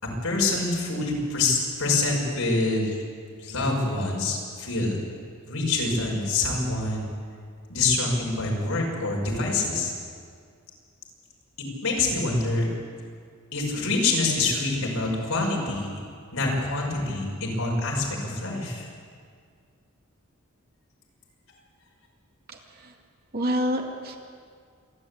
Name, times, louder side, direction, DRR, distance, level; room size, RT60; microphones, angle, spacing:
voice 1, 0.0-3.0 3.4-5.0 5.5-7.1 7.7-9.9 11.8-12.7 13.5-15.9 16.3-18.9, left 3 dB, 85° left, -1 dB, 5.9 m, -26 dB
voice 2, 22.5-22.9 23.3-24.2, equal, 45° right, 2 dB, 2.3 m, -28 dB
27.0 x 11.5 x 8.6 m, 2.1 s
head